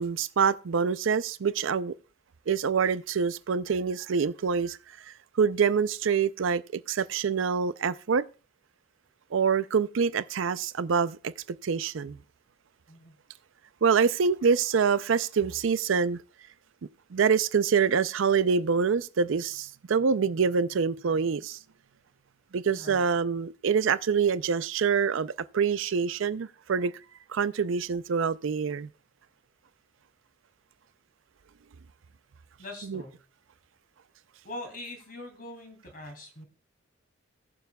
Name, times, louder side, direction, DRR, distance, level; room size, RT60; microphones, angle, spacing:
voice 1, 0.0-1.9 2.5-4.8 5.4-8.3 9.3-11.3 11.6-12.2 13.8-16.2 17.1-21.6 22.5-26.9 27.3-28.9 32.8-33.0, right 6 dB, 75° right, 0.5 m, -26 dB
voice 2, 22.7-23.0 32.6-33.2 34.4-36.5, left 1 dB, 45° left, 2.6 m, -42 dB
19.0 x 7.0 x 2.3 m
head